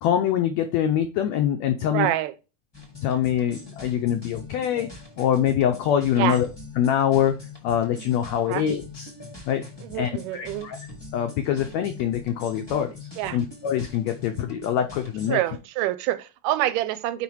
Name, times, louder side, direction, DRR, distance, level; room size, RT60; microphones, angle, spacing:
voice 1, 0.0-2.1 3.0-4.9 5.2-6.5 6.8-7.4 7.6-9.1 9.5-9.6 9.9-10.8 11.1-15.4, left 9 dB, 85° left, 1.5 m, -24 dB
voice 2, 1.9-2.3 6.2-6.4 8.5-8.7 9.8-10.7 13.2-13.4 15.3-17.2, right 14 dB, 90° right, 2.2 m, -26 dB
sound 1, 2.7-15.3, left 3 dB, 40° left, 0.3 m, -43 dB
5.5 x 5.0 x 4.6 m
omnidirectional pair, 3.7 m